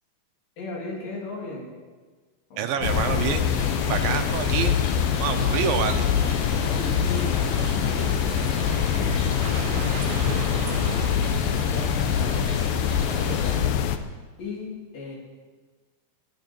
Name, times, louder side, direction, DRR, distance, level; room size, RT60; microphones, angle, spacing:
voice 1, 0.6-1.7 2.5-3.0 6.6-8.1 8.7-10.7 11.2-13.6 14.4-15.2, left 2 dB, 65° left, -3 dB, 4.5 m, -37 dB
voice 2, 2.6-3.5 3.9-4.8 5.2-6.1, right 8 dB, 80° right, 7 dB, 2.4 m, -27 dB
sound 1, 2.8-14.0, left 8 dB, 80° left, 2.4 m, -24 dB
sound 2, 3.4-13.6, left 1 dB, 35° left, 3.7 m, -39 dB
sound 3, 5.9-11.1, right 4 dB, 60° right, 2.1 m, -37 dB
21.5 x 9.3 x 4.5 m, 1.4 s
omnidirectional pair, 4.3 m